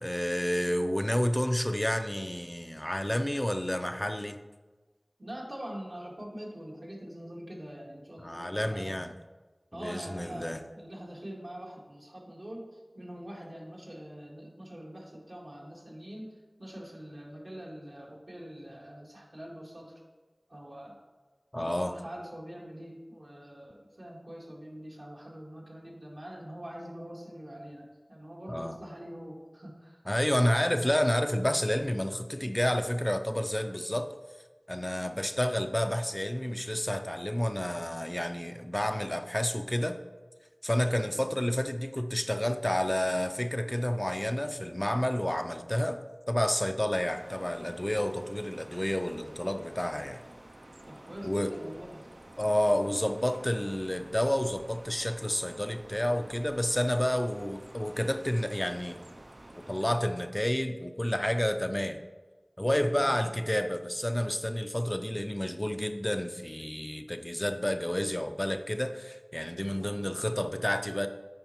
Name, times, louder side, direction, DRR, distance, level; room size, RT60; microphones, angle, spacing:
voice 1, 0.0-4.4 8.2-9.1 9.7-10.6 21.5-22.0 28.5-28.7 30.1-34.1 34.7-40.0 40.6-46.0 46.3-50.2 51.2-51.5 52.4-59.0 59.6-62.0 62.6-71.1, equal, 20° left, 7 dB, 0.4 m, -30 dB
voice 2, 5.2-9.1 9.7-19.9 20.5-21.0 21.5-30.0 30.4-30.8 41.0-41.4 50.9-52.1 62.8-63.4 69.7-70.4, equal, 70° right, -3 dB, 1.8 m, -44 dB
sound 1, 47.0-60.0, right 1 dB, 50° right, 0.4 m, -50 dB
8.8 x 5.2 x 3.0 m, 1.3 s
wide cardioid pair, 45°, 0 cm